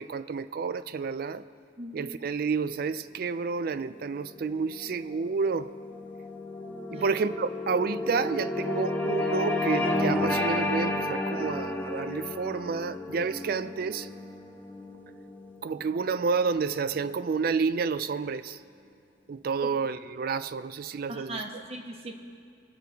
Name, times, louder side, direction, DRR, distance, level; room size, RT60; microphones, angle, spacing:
voice 1, 0.0-1.4 1.9-5.7 6.9-14.1 15.6-18.6 19.3-21.4, right 5 dB, 55° right, 0.4 m, -30 dB
sound 1, 4.2-16.7, left 2 dB, 10° left, 0.8 m, -32 dB
voice 2, 21.1-22.2, right 1 dB, 35° right, 1.1 m, -38 dB
20.5 x 6.8 x 4.6 m
head